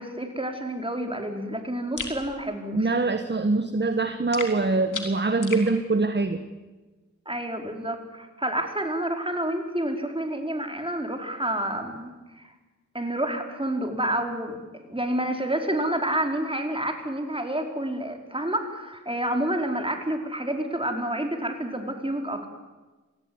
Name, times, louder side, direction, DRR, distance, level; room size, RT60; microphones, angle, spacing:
voice 1, 0.0-2.9 7.2-12.5 12.9-22.5, right 1 dB, 15° right, 3 dB, 4.8 m, -29 dB
sound 1, 2.0-2.2 4.3-5.7, left 4 dB, 80° left, 3.7 m, -34 dB
voice 2, 2.7-6.4, right 3 dB, 35° right, 9 dB, 1.5 m, -24 dB
26.0 x 17.5 x 9.8 m, 1.2 s
cardioid pair, 45°, 30 cm